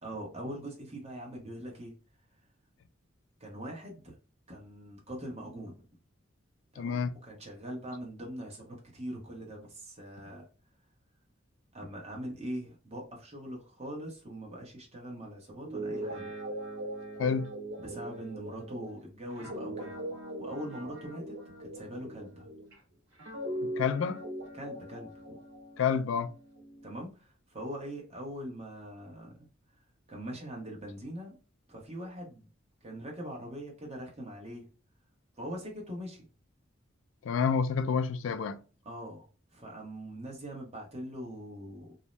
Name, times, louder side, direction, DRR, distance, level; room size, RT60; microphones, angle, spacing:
voice 1, 0.0-1.9 3.4-4.1 4.5-5.9 6.7-10.5 11.7-16.3 17.8-20.1 20.4-22.5 24.5-25.4 26.8-29.5 30.1-31.4 31.7-32.5 32.8-34.7 35.4-36.2 38.8-39.3 39.5-41.9, equal, 30° right, 0.9 m, -42 dB
voice 2, 6.8-7.2 17.2-17.5 23.6-24.2 25.8-26.4 37.2-38.6, left 6 dB, 75° left, 0.3 m, -29 dB
Guitar, 15.5-22.7 23.2-26.9, right 1 dB, 70° right, 1.3 m, -40 dB
2.6 x 2.0 x 3.1 m
head